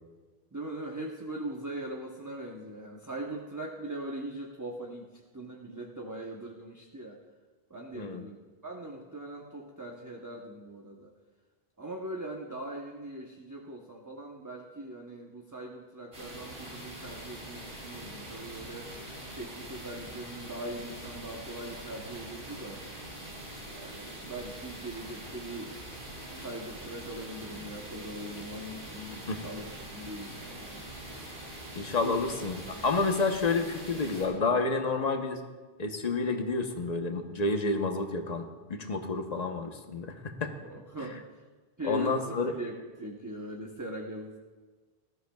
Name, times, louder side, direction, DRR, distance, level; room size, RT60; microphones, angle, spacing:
voice 1, 0.5-7.2 7.7-8.4 8.6-11.1 11.8-18.9 19.3-22.8 23.7-25.8 26.3-31.0 32.0-32.3 32.7-32.9 40.6-41.2 41.8-44.4, right 1 dB, 20° right, -1 dB, 0.9 m, -41 dB
voice 2, 7.9-8.2 29.3-29.4 31.7-35.4 35.8-40.5 41.8-42.5, left 3 dB, 40° left, 4 dB, 1.1 m, -30 dB
sound 1, 16.1-34.3, right 1 dB, 65° right, 4.1 m, -43 dB
19.5 x 13.0 x 2.3 m, 1.4 s
omnidirectional pair, 1.1 m